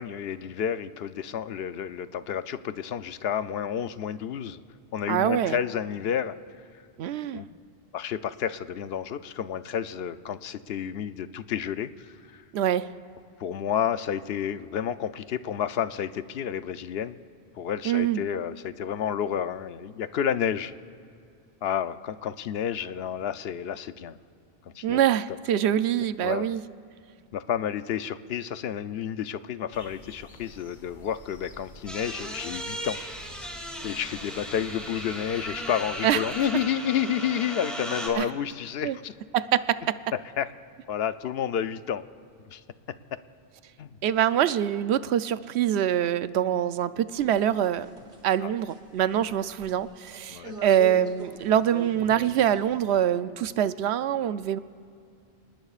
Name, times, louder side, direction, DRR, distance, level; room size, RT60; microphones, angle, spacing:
voice 1, 0.0-4.6 4.9-6.3 7.3-7.5 7.9-12.4 13.4-17.2 17.6-20.7 21.6-24.2 24.7-25.0 26.2-26.5 27.3-33.0 33.8-39.1 40.4-40.5 40.9-42.0 42.5-42.6 43.8-44.0 48.4-48.5 50.3-50.6, left 9 dB, 70° left, 12 dB, 0.8 m, -30 dB
voice 2, 5.1-5.6 7.0-7.4 12.5-12.9 17.8-18.2 24.8-26.6 36.0-36.2 38.2-38.3 38.8-39.0 39.3-40.0 44.0-47.9 48.2-54.6, right 10 dB, 85° right, 14 dB, 0.8 m, -24 dB
sound 1, 29.7-36.5, left 1 dB, 45° left, 1.7 m, -48 dB
sound 2, 31.9-38.1, equal, ahead, 2.5 m, -36 dB
sound 3, 47.2-53.0, right 3 dB, 50° right, 1.5 m, -43 dB
29.0 x 19.5 x 2.4 m, 2.4 s
omnidirectional pair, 1.1 m